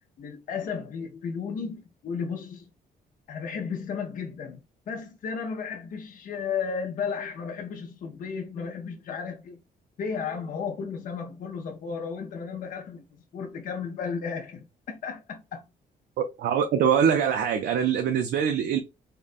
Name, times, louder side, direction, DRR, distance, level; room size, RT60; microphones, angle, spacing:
voice 1, 0.2-2.7 3.3-9.6 10.0-15.6, left 6 dB, 55° left, 0.6 m, -34 dB
voice 2, 16.4-18.8, right 8 dB, 85° right, 0.5 m, -23 dB
3.7 x 2.1 x 2.4 m
cardioid pair, 160°, 17 cm